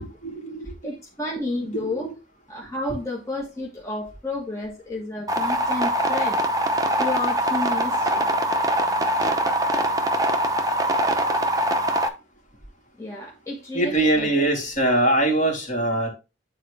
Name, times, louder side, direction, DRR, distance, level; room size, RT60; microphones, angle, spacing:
voice 1, 0.0-0.6 2.0-2.1 13.7-16.1, right 1 dB, 40° left, -1 dB, 3.0 m, -22 dB
voice 2, 0.8-2.1 2.5-6.4 7.0-8.3 13.0-14.4, left 2 dB, 15° left, -3 dB, 1.4 m, -31 dB
sound 1, 5.3-12.1, right 1 dB, 20° right, 0.8 m, -23 dB
9.4 x 4.2 x 3.3 m, 0.28 s
head